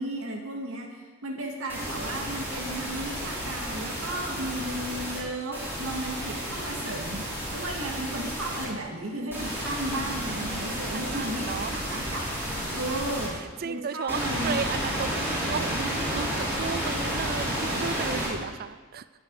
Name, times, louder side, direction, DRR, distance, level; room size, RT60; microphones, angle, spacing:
voice 1, 0.0-7.2 7.5-12.3 12.7-13.4 13.6-14.6 18.4-18.5, right 1 dB, 70° right, 0 dB, 2.2 m, -34 dB
sound 1, 1.7-5.2 5.5-8.7 9.3-13.3 14.1-18.3, equal, 10° right, 5.7 m, -31 dB
voice 2, 10.6-11.7 12.7-12.8 13.3-19.0, right 6 dB, 45° right, 14 dB, 0.4 m, -34 dB
23.5 x 8.2 x 4.9 m, 1.4 s
head